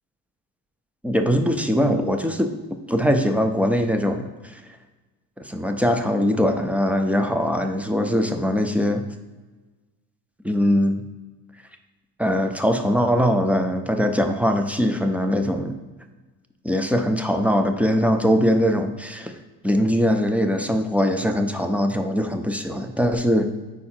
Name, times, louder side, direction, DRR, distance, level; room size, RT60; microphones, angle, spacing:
voice 1, 1.0-2.5 2.9-4.6 5.4-9.1 10.4-11.0 12.2-15.8 16.6-19.4 19.6-23.5, equal, 5° right, 6 dB, 0.3 m, -21 dB
4.8 x 4.7 x 4.3 m, 1.2 s
cardioid pair, 140°, 38 cm